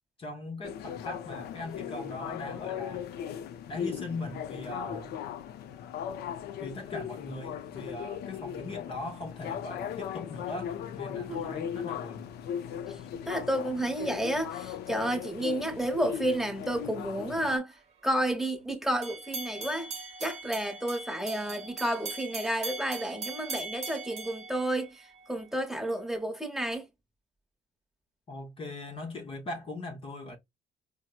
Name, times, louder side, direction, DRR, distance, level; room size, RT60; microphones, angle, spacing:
voice 1, 0.2-3.1 3.7-5.1 6.6-12.3 28.3-30.4, left 2 dB, 35° left, 0.8 m, -40 dB
sound 1, 0.6-17.6, left 9 dB, 70° left, 0.5 m, -38 dB
voice 2, 13.3-17.8 18.0-19.9 20.2-26.9, right 1 dB, ahead, 1.1 m, -31 dB
sound 2, 19.0-25.3, right 3 dB, 40° right, 0.8 m, -40 dB
4.3 x 2.0 x 2.3 m
cardioid pair, 110°, 17 cm